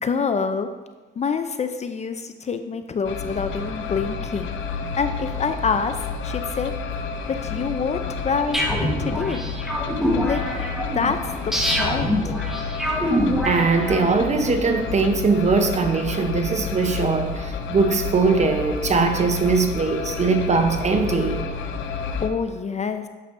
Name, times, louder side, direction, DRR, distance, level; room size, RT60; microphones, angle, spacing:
voice 1, 0.0-0.7 1.2-4.5 5.0-6.7 7.3-9.4 10.2-10.4 10.9-12.4 21.9-23.1, left 5 dB, 35° left, 9 dB, 0.5 m, -26 dB
sound 1, 3.0-22.3, left 5 dB, 75° left, 0.6 m, -30 dB
sound 2, 8.5-14.3, equal, ahead, 1.3 m, -25 dB
voice 2, 13.4-21.5, right 4 dB, 35° right, 6 dB, 0.8 m, -21 dB
9.5 x 6.6 x 2.6 m, 1.3 s
cardioid pair, 90°, 20 cm